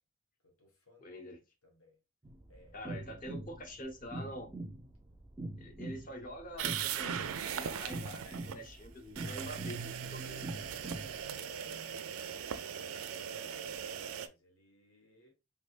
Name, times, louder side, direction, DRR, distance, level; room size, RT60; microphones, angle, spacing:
voice 1, 0.4-2.0 2.5-2.8 11.3-15.3, left 1 dB, 85° left, 1.2 m, -61 dB
voice 2, 1.0-1.4 2.7-4.5 5.6-10.4, equal, 40° left, 0.7 m, -46 dB
sound 1, 2.2-11.2, right 2 dB, 15° right, 0.4 m, -44 dB
sound 2, 6.6-8.6 9.2-14.3, right 8 dB, 80° right, 0.4 m, -39 dB
3.4 x 3.3 x 2.4 m
head